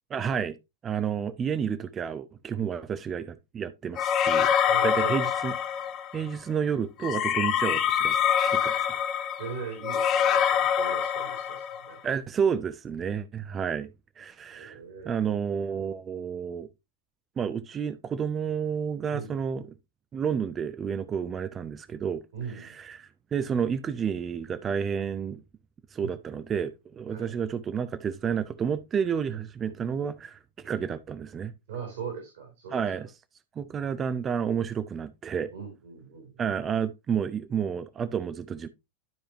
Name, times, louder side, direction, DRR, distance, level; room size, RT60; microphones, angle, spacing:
voice 1, 0.1-0.6 0.8-4.5 4.8-5.5 6.1-8.2 8.5-9.0 12.0-13.9 14.2-14.8 15.0-16.7 17.4-19.6 20.1-22.2 22.6-25.4 25.9-31.5 32.7-33.1 33.6-35.5 36.4-38.7, right 7 dB, 25° right, 0.6 m, -30 dB
voice 2, 2.5-2.9 4.7-5.3 7.6-7.8 9.4-12.0 14.5-15.2 19.1-19.3 22.3-22.8 26.0-26.5 27.1-27.4 29.3-29.8 31.7-33.1 35.5-36.5, right 6 dB, 60° right, 3.2 m, -40 dB
sound 1, 4.0-6.2 7.0-11.9, left 8 dB, 30° left, 0.8 m, -25 dB
12.0 x 5.0 x 2.9 m
figure-of-eight pair, 90°, 0 cm